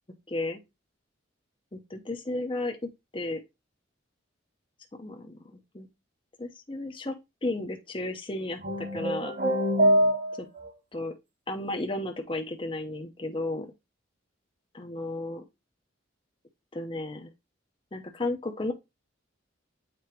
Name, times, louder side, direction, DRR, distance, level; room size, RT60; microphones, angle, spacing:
voice 1, 0.3-0.6 1.7-2.8 3.1-3.4 5.0-5.9 6.4-7.1 7.4-9.3 10.4-10.5 10.9-11.1 11.5-13.7 14.7-15.4 16.7-17.3 17.9-18.7, left 2 dB, 25° left, 0.8 m, -33 dB
sound 1, 8.6-10.7, equal, 55° right, 2.6 m, -24 dB
7.7 x 4.4 x 2.9 m
head